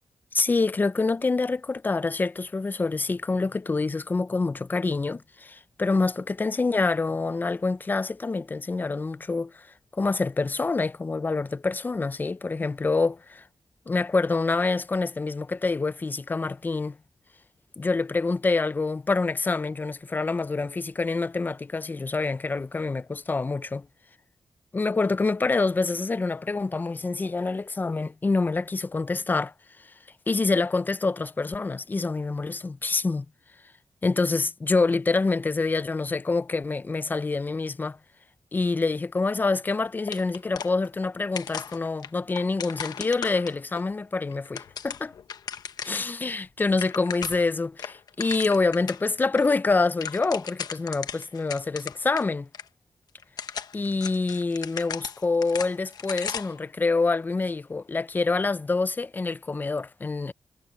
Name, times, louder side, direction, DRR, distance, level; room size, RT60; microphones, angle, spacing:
voice 1, 0.3-9.7 9.9-13.4 13.9-17.0 17.8-23.9 24.7-29.5 29.8-29.9 30.3-33.3 34.0-38.0 38.5-45.1 45.8-52.5 53.7-60.3, left 3 dB, 30° left, 0.5 m, -26 dB
sound 1, 40.1-41.1 41.3-43.8 44.3-46.1 46.4-46.5 46.7-47.5 47.8-49.0 49.4-49.5 49.8-52.2 52.5-52.6 53.2-56.6, left 7 dB, 80° left, 1.1 m, -36 dB
cardioid pair, 95°, 7 cm